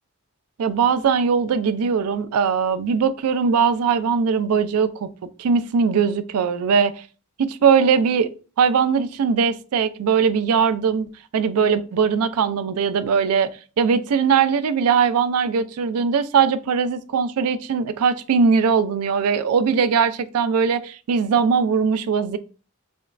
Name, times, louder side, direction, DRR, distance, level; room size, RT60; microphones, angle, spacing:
voice 1, 0.6-5.1 5.4-6.9 7.4-8.3 8.6-13.5 13.8-22.4, right 6 dB, 85° right, 13 dB, 0.4 m, -20 dB
5.1 x 2.4 x 2.2 m, 0.36 s
head